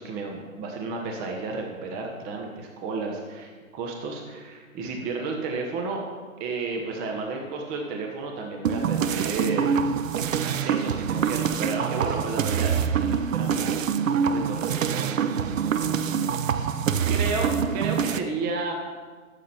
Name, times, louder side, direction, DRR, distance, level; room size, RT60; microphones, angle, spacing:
voice 1, 0.0-6.0 6.4-9.8 10.4-16.6 17.1-18.7, right 3 dB, 20° right, 1 dB, 1.2 m, -32 dB
sound 1, 8.6-18.2, right 7 dB, 65° right, 0.7 m, -25 dB
12.0 x 7.2 x 4.4 m, 1.4 s
hypercardioid pair, 130°, 41 cm